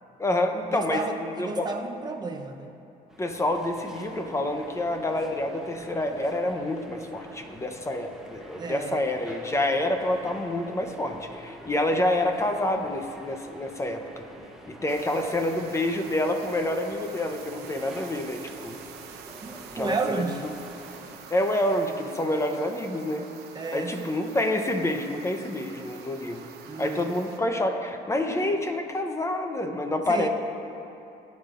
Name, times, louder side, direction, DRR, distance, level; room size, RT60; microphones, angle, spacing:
voice 1, 0.2-1.7 3.2-14.2 14.7-18.8 19.7-20.3 21.3-23.3 23.7-26.5 26.8-30.3, left 1 dB, 15° left, 5 dB, 0.8 m, -28 dB
voice 2, 0.7-2.7 8.6-9.0 19.4-20.4 23.5-24.1 26.7-27.1 30.1-30.3, right 4 dB, 25° right, 3 dB, 0.8 m, -32 dB
sound 1, 3.1-21.2, right 1 dB, 5° right, 1.0 m, -48 dB
sound 2, 14.9-27.4, right 6 dB, 75° right, 0.9 m, -46 dB
18.0 x 9.5 x 2.6 m, 2.8 s
cardioid pair, 110°, 17 cm